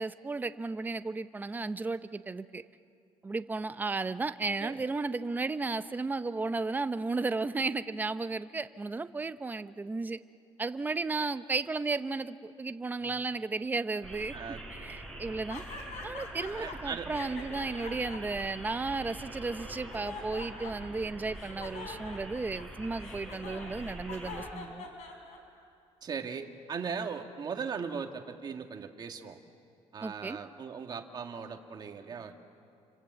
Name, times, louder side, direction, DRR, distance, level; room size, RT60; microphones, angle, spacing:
voice 1, 0.0-2.6 3.2-10.2 10.6-14.4 14.7-15.6 16.0-24.9 30.0-30.4, right 3 dB, 15° right, 12 dB, 0.7 m, -34 dB
sound 1, 14.0-24.5, right 1 dB, 5° left, 5.1 m, -45 dB
sound 2, 15.5-16.8 17.1-19.2 19.7-21.0 21.3-25.6, left 4 dB, 75° left, 4.5 m, -44 dB
voice 2, 16.5-17.1 26.0-29.4 29.9-32.4, right 6 dB, 35° right, 5 dB, 1.8 m, -38 dB
29.0 x 25.5 x 8.0 m, 2.5 s
cardioid pair, 155°, 12 cm